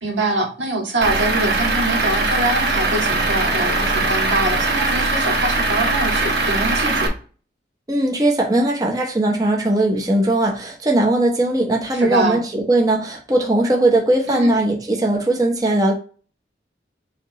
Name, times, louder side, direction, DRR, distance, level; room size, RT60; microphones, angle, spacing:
voice 1, 0.0-7.1 11.9-12.4 14.3-14.6, right 2 dB, 90° right, 1.8 m, -24 dB
Truck / Idling, 1.0-7.1, right 2 dB, 60° right, 1.1 m, -20 dB
voice 2, 7.9-15.9, right 1 dB, 20° right, 0.7 m, -19 dB
6.4 x 2.9 x 2.9 m
head